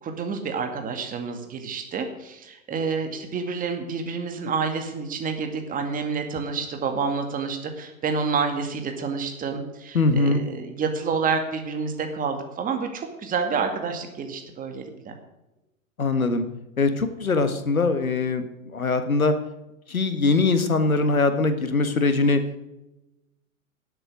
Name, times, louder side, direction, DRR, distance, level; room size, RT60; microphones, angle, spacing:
voice 1, 0.0-15.2, right 5 dB, 20° right, 5 dB, 2.1 m, -28 dB
voice 2, 9.9-10.4 16.0-16.4 16.8-18.4 18.7-19.3 19.9-22.4, left 3 dB, 75° left, 9 dB, 1.7 m, -22 dB
18.0 x 7.9 x 6.2 m, 0.95 s
figure-of-eight pair, 100°, 42 cm